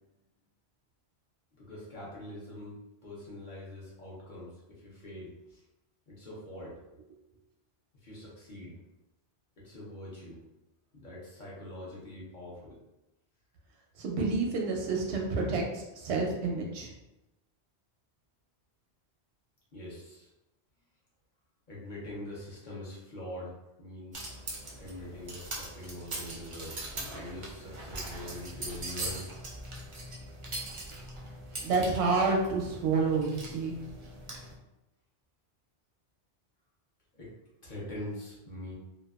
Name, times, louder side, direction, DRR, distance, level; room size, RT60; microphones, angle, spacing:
voice 1, 1.6-5.6 6.1-6.7 8.0-8.8 9.6-10.4 10.9-12.8 19.7-20.3 21.7-23.5 23.8-24.3 24.8-26.8 27.0-29.2 37.1-37.3 37.6-38.8, left 1 dB, 50° left, -6 dB, 0.8 m, -43 dB
voice 2, 14.0-16.9 31.6-33.7, right 3 dB, 85° right, 0 dB, 0.9 m, -29 dB
sound 1, 24.1-34.5, right 2 dB, 55° right, 0.3 m, -41 dB
2.7 x 2.2 x 2.3 m, 0.96 s
omnidirectional pair, 1.1 m